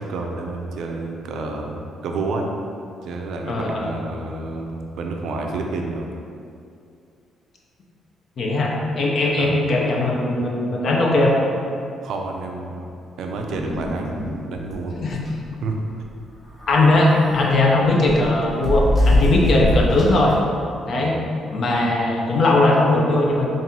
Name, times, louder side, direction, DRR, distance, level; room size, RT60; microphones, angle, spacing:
voice 1, 0.0-2.5 3.0-6.1 9.3-9.5 12.0-15.0 15.6-16.1 20.9-21.1, right 3 dB, 75° right, 2 dB, 0.4 m, -29 dB
voice 2, 3.5-3.9 8.4-11.4 15.0-15.2 16.7-20.4 20.9-21.1 21.5-23.5, left 2 dB, 55° left, -2 dB, 0.7 m, -19 dB
sound 1, 13.4-14.4 14.7-14.8 15.1-15.3 16.5-17.5 18.0-20.3, left 1 dB, 40° left, 1.4 m, -22 dB
5.3 x 2.5 x 2.8 m, 2.4 s
cardioid pair, 90°, 0 cm